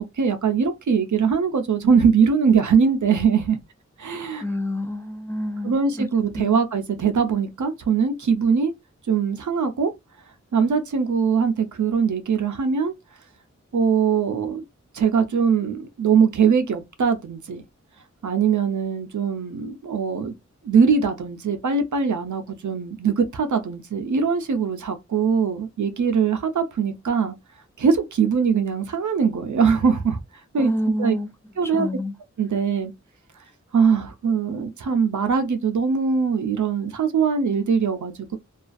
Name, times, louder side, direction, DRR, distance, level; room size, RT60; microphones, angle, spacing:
voice 1, 0.0-3.6 4.0-4.4 5.6-8.7 9.1-9.9 10.5-12.9 13.7-14.6 14.9-17.6 18.2-20.3 20.6-27.4 27.8-30.2 30.5-30.7 31.0-31.1 31.6-31.9 32.4-32.9 33.7-38.4, right 6 dB, 85° right, 0.5 m, -21 dB
voice 2, 4.4-6.1 6.4-6.6 30.6-31.3 31.6-32.1, left 1 dB, 10° left, 0.5 m, -28 dB
2.4 x 2.3 x 2.5 m
wide cardioid pair, 40°, 29 cm